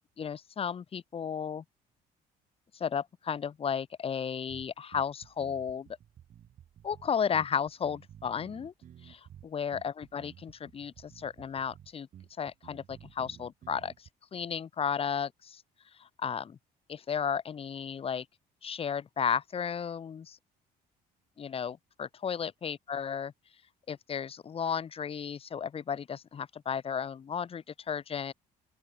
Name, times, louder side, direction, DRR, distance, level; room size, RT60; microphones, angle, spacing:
voice 1, 0.2-1.6 2.7-5.9 6.8-8.7 9.0-12.1 12.4-15.6 16.0-16.6 16.9-18.2 18.6-20.4 21.4-23.3 23.9-28.3, left 7 dB, 35° left, 1.1 m, -34 dB
sound 1, 4.5-14.1, right 10 dB, 50° right, 1.2 m, -53 dB
open air
cardioid pair, 110°, 17 cm